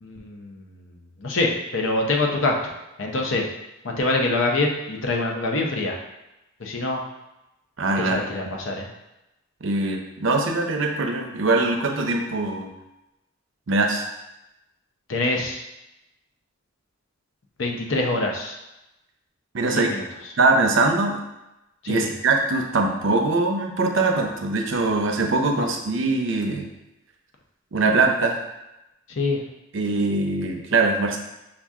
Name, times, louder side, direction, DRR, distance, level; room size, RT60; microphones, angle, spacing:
voice 1, 0.0-0.8 1.2-2.6 3.0-3.5 4.0-6.0 6.6-7.0 8.0-8.9 15.1-15.6 17.6-18.5 19.6-20.0 21.8-22.1 25.6-25.7 29.2-29.4, left 2 dB, 70° left, 1 dB, 0.7 m, -25 dB
voice 2, 7.8-8.2 9.6-12.7 13.7-14.1 19.5-19.9 20.4-21.2 21.9-26.7 27.7-28.4 29.7-31.2, right 3 dB, 70° right, 3 dB, 0.6 m, -22 dB
5.7 x 2.5 x 3.6 m, 0.93 s
head